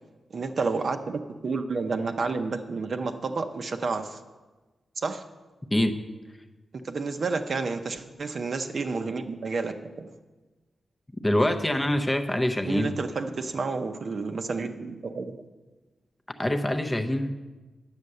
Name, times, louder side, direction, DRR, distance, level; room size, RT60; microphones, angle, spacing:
voice 1, 0.3-4.2 5.0-5.2 6.8-10.1 12.6-15.4, right 4 dB, 45° right, 7 dB, 0.7 m, -30 dB
voice 2, 11.2-13.0 16.4-17.3, left 1 dB, 15° left, 6 dB, 0.6 m, -25 dB
9.7 x 7.3 x 6.6 m, 1.2 s
wide cardioid pair, 150°, 0 cm